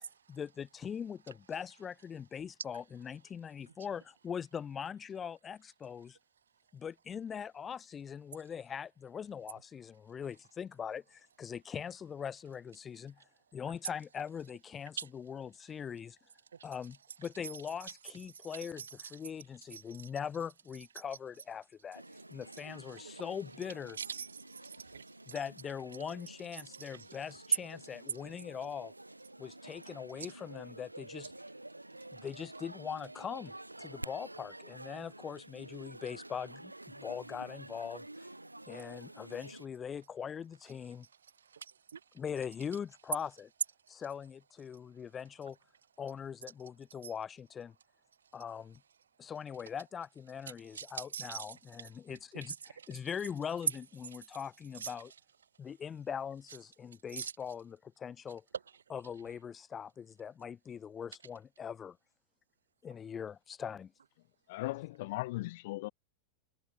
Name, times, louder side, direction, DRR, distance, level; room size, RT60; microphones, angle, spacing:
voice 1, 0.0-6.2 6.7-13.2 13.5-16.2 16.6-22.0 22.3-24.0 25.3-28.9 29.4-31.3 32.1-33.5 33.8-38.3 38.7-41.1 42.1-43.5 43.9-45.6 46.0-47.7 48.3-48.8 49.2-55.1 55.6-58.4 58.9-62.0 62.8-63.9, left 7 dB, 20° left, 0.9 m, -42 dB
voice 2, 18.6-18.9 19.7-19.8 22.9-23.2 24.0-24.3 24.6-25.0 41.5-42.0 50.7-51.5 54.8-54.9 57.1-57.3, right 7 dB, 70° right, 0.4 m, -42 dB
sound 1, 21.9-39.7, right 2 dB, 85° right, 1.4 m, -50 dB
voice 3, 64.5-65.9, left 20 dB, 50° left, 0.5 m, -37 dB
figure-of-eight pair, 90°, 0 cm